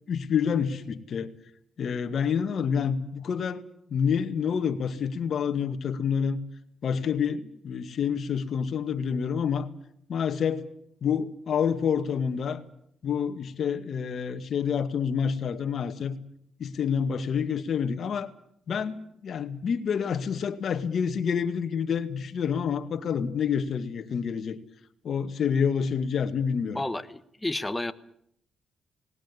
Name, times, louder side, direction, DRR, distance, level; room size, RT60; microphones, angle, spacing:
voice 1, 0.1-1.3 1.8-3.6 3.9-6.4 6.8-9.7 10.1-10.6 11.0-12.6 13.0-16.2 16.6-18.3 18.7-24.6 25.0-26.8, left 7 dB, 60° left, 8 dB, 2.0 m, -28 dB
voice 2, 26.7-27.9, left 2 dB, 10° left, 12 dB, 1.4 m, -31 dB
19.5 x 18.5 x 9.8 m, 0.70 s
cardioid pair, 90°, 0 cm